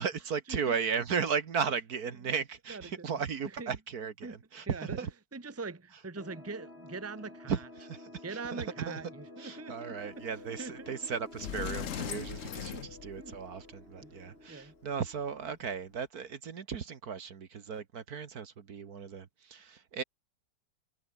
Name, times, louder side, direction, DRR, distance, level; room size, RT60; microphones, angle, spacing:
voice 1, 0.0-5.1 7.5-9.0 9.4-20.0, right 6 dB, 55° right, 1.8 m, -36 dB
voice 2, 2.7-3.1 3.6-3.7 4.2-4.4 4.7-5.0 5.3-7.5 8.2-10.2 10.6-10.9 12.7-12.9 13.2-13.3 14.0-14.7, right 3 dB, 10° right, 1.2 m, -43 dB
sound 1, 6.2-15.5, left 1 dB, 35° left, 6.3 m, -51 dB
Sliding door, 10.9-11.0 11.3-13.6, left 9 dB, 50° left, 1.2 m, -39 dB
omnidirectional pair, 2.0 m